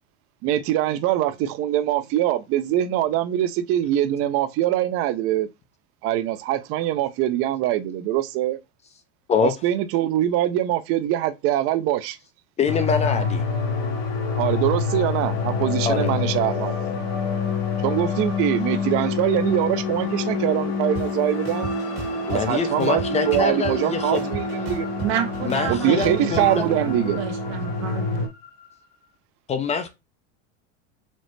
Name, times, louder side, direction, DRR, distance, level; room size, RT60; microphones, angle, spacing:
voice 1, 0.4-5.5 6.0-8.6 9.4-12.2 14.4-16.7 17.8-21.7 22.3-24.9 25.7-27.2, right 12 dB, 45° right, 0.5 m, -23 dB
voice 2, 12.6-13.5 15.9-16.1 22.3-24.3 25.4-26.6 29.5-29.9, left 5 dB, 20° left, 0.4 m, -24 dB
sound 1, 12.7-28.3, left 4 dB, 70° left, 1.0 m, -27 dB
sound 2, 20.9-21.0 21.4-22.4 22.8-23.9 24.1-26.4, right 5 dB, 70° right, 1.4 m, -34 dB
sound 3, 21.3-29.1, left 6 dB, 45° left, 1.0 m, -44 dB
voice 3, 25.0-28.3, right 9 dB, 90° right, 0.9 m, -30 dB
4.2 x 2.0 x 3.1 m
supercardioid pair, 115°, 31 cm